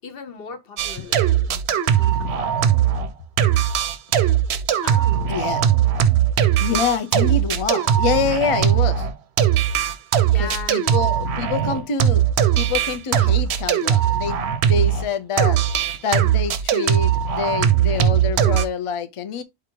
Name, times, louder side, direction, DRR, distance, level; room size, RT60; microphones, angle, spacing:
voice 1, 0.0-1.6 2.0-2.5 4.8-5.4 10.2-10.8, left 5 dB, 60° left, 1.0 m, -37 dB
sound 1, 0.8-3.1 3.4-15.1 15.4-18.6, right 10 dB, 80° right, 0.9 m, -19 dB
voice 2, 5.3-5.6 6.6-9.1 10.3-12.2 12.6-14.4 14.6-15.8 16.0-19.4, left 6 dB, 45° left, 0.4 m, -26 dB
4.9 x 2.4 x 4.4 m
omnidirectional pair, 1.1 m